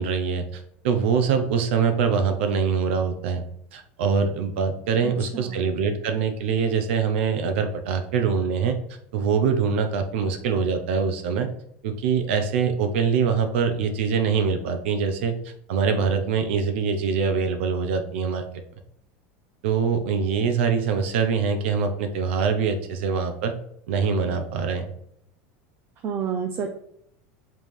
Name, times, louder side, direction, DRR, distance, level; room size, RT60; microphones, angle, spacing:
voice 1, 0.0-3.4 3.7-8.7 9.1-11.5 11.8-15.3 15.7-18.4 19.6-23.5 23.9-24.8, right 6 dB, 80° right, 6 dB, 1.0 m, -24 dB
voice 2, 5.0-5.7 26.0-26.7, right 7 dB, 35° right, 3 dB, 0.6 m, -30 dB
5.4 x 3.7 x 4.7 m, 0.73 s
supercardioid pair, 145°, 6 cm